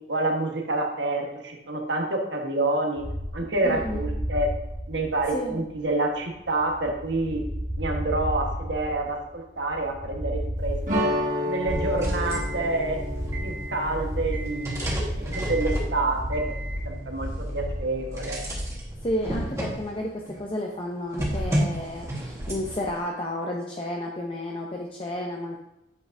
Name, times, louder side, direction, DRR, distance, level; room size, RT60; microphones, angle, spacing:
voice 1, 0.1-3.0 3.3-4.5 4.9-7.4 7.8-11.1 11.4-13.0 13.4-14.9 15.2-16.6 16.8-18.4, right 2 dB, 75° right, 2 dB, 1.3 m, -28 dB
sound 1, 3.0-17.9, equal, 15° left, 1.0 m, -33 dB
voice 2, 3.6-4.1 5.3-5.7 19.0-25.6, left 1 dB, 30° left, -1 dB, 0.7 m, -32 dB
sound 2, 10.9-15.7, equal, 45° right, 1.6 m, -31 dB
sound 3, 11.7-20.4 21.1-23.0, equal, 15° right, 1.6 m, -32 dB
8.3 x 7.6 x 2.7 m, 0.88 s
head